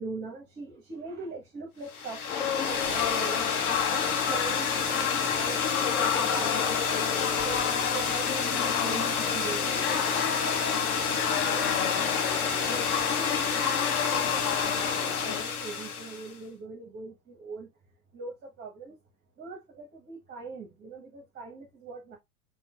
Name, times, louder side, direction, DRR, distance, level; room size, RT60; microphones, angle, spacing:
voice 1, 0.0-3.5 3.9-10.0 10.4-17.7 18.1-19.0 19.4-22.2, right 4 dB, 25° right, 1.1 m, -42 dB
sound 1, 1.9-16.3, left 5 dB, 75° left, 1.0 m, -30 dB
sound 2, 2.3-15.4, left 8 dB, 25° left, 0.5 m, -30 dB
5.7 x 2.5 x 2.2 m
figure-of-eight pair, 85°, 44 cm